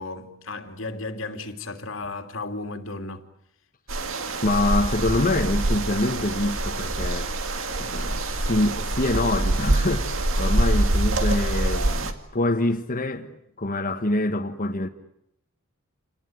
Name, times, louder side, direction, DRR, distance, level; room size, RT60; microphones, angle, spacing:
voice 1, 0.0-3.3, left 3 dB, 75° left, 2.8 m, -34 dB
sound 1, 3.9-12.1, right 1 dB, 75° right, 2.3 m, -25 dB
voice 2, 4.4-7.3 7.8-8.2 8.5-13.3 13.6-14.9, left 2 dB, 45° left, 1.5 m, -25 dB
28.5 x 19.5 x 9.4 m
head